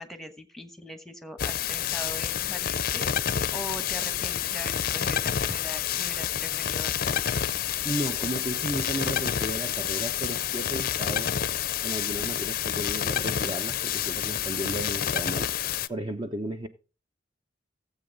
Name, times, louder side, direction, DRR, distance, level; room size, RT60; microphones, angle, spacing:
voice 1, 0.0-3.1 3.5-7.2, equal, ahead, 1.2 m, -41 dB
sound 1, 1.4-15.9, left 9 dB, 50° left, 0.5 m, -29 dB
voice 2, 7.8-11.3 11.8-15.5 15.9-16.7, right 1 dB, 25° right, 0.7 m, -34 dB
16.0 x 7.9 x 3.9 m
head